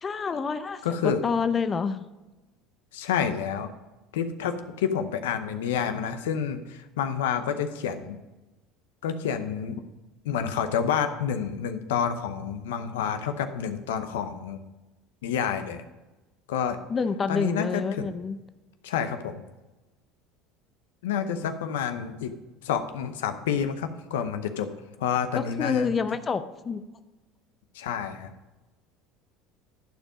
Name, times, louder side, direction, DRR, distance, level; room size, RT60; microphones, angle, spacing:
voice 1, 0.0-2.0 16.9-18.4 25.4-26.8, left 5 dB, 30° left, 11 dB, 0.6 m, -28 dB
voice 2, 0.8-1.2 2.9-3.7 4.1-8.2 9.0-9.8 10.2-14.6 15.2-15.8 16.5-16.8 17.3-18.1 18.8-19.4 21.0-22.3 22.6-24.7 25.0-25.9 27.7-28.3, left 8 dB, 85° left, 9 dB, 0.7 m, -29 dB
12.0 x 4.5 x 5.1 m, 1.1 s
supercardioid pair, 90°, 0 cm